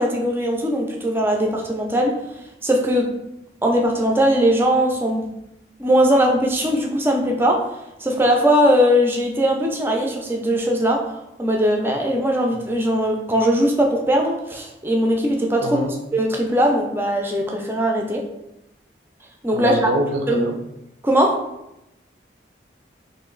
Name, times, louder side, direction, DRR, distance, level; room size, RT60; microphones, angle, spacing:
voice 1, 0.0-2.2 2.6-3.1 3.6-5.3 5.8-7.6 8.0-15.8 16.1-18.2 19.4-19.9 20.3-20.5 21.0-21.4, equal, 10° right, 1 dB, 0.4 m, -20 dB
voice 2, 15.6-15.9 19.5-20.5, right 1 dB, 85° right, 3 dB, 0.6 m, -25 dB
3.0 x 2.6 x 3.7 m, 0.88 s
head